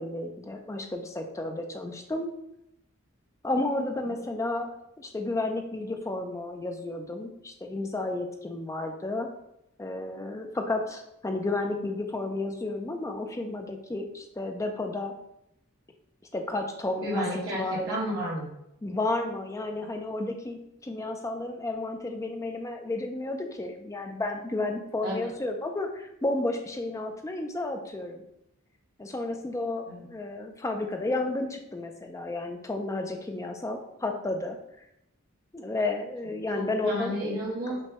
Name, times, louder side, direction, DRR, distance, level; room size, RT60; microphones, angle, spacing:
voice 1, 0.0-2.3 3.4-4.7 5.0-9.3 9.8-15.1 16.3-17.2 17.5-17.9 18.8-28.2 29.0-34.6 35.5-37.1, left 2 dB, 15° left, 4 dB, 0.4 m, -32 dB
voice 2, 17.0-18.5 25.0-25.3 29.9-30.1 36.5-37.8, equal, 65° right, -7 dB, 1.4 m, -31 dB
6.0 x 2.2 x 2.8 m, 0.82 s
head